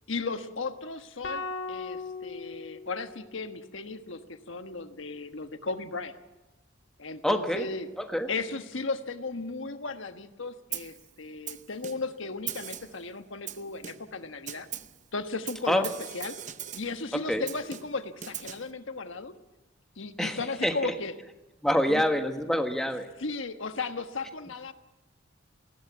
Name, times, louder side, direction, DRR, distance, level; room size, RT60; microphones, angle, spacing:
voice 1, 0.1-6.2 7.0-7.9 8.3-14.7 15.1-16.4 16.7-19.3 20.0-21.1 21.9-22.0 23.2-24.7, left 3 dB, 80° left, 8 dB, 1.4 m, -35 dB
sound 1, 1.2-3.6, left 3 dB, 65° left, 2.4 m, -38 dB
voice 2, 7.2-7.7 8.0-8.3 15.7-15.8 17.1-17.4 20.2-20.9 21.6-23.1, equal, ahead, 5 dB, 1.4 m, -27 dB
Snare drum, 10.7-11.0 11.5-12.2 12.5-13.0 13.5-14.2 14.5-15.0 15.5-17.0 17.5-18.7, right 10 dB, 40° right, 0.7 m, -40 dB
20.0 x 16.0 x 8.4 m, 1.0 s
head